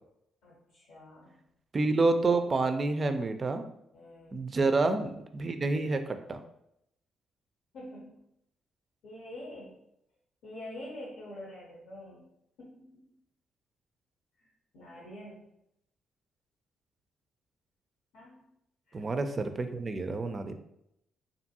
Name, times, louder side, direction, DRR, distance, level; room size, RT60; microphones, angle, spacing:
voice 1, 0.4-1.4 3.9-4.4 7.7-8.2 9.0-9.8 10.4-12.2 12.6-13.1 14.4-14.5 14.7-15.5 18.1-18.5 18.9-19.0, left 1 dB, 75° left, -3 dB, 0.7 m, -46 dB
voice 2, 1.7-3.6 4.3-6.4 18.9-20.5, right 3 dB, 40° right, 8 dB, 0.3 m, -28 dB
2.6 x 2.5 x 2.7 m, 0.79 s
hypercardioid pair, 50°, 0 cm